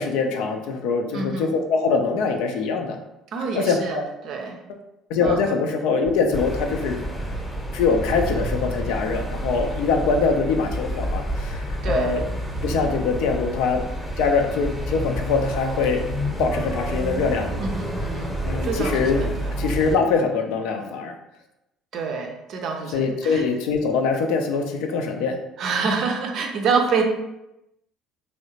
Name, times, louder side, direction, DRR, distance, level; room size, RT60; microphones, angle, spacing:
voice 1, 0.0-3.0 3.5-4.0 5.1-7.0 7.7-12.2 12.6-13.8 14.2-16.0 16.4-17.5 18.4-19.2 19.6-21.1 22.9-25.4, left 4 dB, 60° left, 4 dB, 0.4 m, -23 dB
voice 2, 1.1-1.5 3.3-4.6 5.2-5.4 11.8-12.2 17.6-19.6 21.9-23.4 25.6-27.0, right 5 dB, 50° right, 3 dB, 0.5 m, -27 dB
sound 1, 5.2-5.6 6.0-6.7 7.3-7.7 8.1-8.8 9.4-9.7 10.2-10.7 11.5-13.6, right 5 dB, 90° right, 0.6 m, -41 dB
sound 2, 6.3-20.0, equal, 5° left, 0.8 m, -29 dB
3.2 x 2.7 x 2.7 m, 0.91 s
figure-of-eight pair, 55°, 0 cm